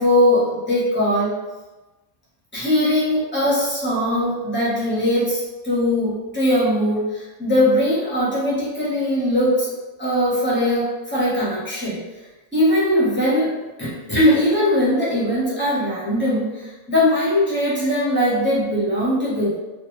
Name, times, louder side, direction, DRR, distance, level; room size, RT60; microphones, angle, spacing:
voice 1, 0.0-1.3 2.5-5.4 5.6-9.7 10.0-12.0 12.5-13.5 13.8-19.6, left 1 dB, 10° left, -9 dB, 0.7 m, -20 dB
2.4 x 2.3 x 3.0 m, 1.1 s
omnidirectional pair, 1.6 m